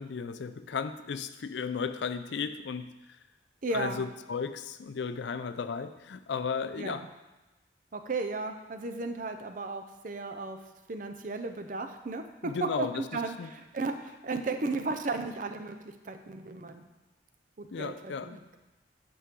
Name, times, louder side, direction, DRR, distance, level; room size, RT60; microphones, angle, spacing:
voice 1, 0.0-2.9 3.7-7.1 12.4-13.5 17.7-18.4, left 5 dB, 80° left, 11 dB, 0.4 m, -35 dB
voice 2, 3.6-4.0 6.8-7.1 7.9-10.6 10.9-14.0 14.2-15.8 16.0-16.8 17.6-18.6, right 3 dB, 45° right, 7 dB, 0.6 m, -35 dB
8.2 x 6.2 x 3.7 m, 1.1 s
head